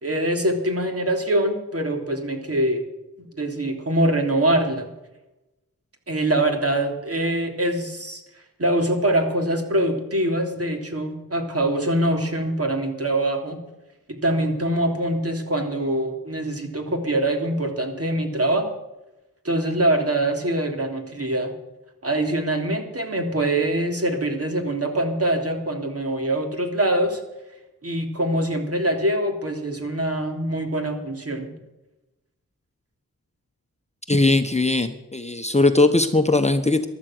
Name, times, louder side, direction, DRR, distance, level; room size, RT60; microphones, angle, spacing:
voice 1, 0.0-2.8 3.2-4.9 6.1-8.2 8.6-13.6 14.2-18.7 19.4-21.5 22.0-27.2 27.8-31.5, right 1 dB, 45° right, 4 dB, 3.1 m, -24 dB
voice 2, 34.1-36.9, left 2 dB, 20° left, 7 dB, 1.1 m, -19 dB
15.0 x 11.5 x 6.2 m, 1.0 s
cardioid pair, 50°, 34 cm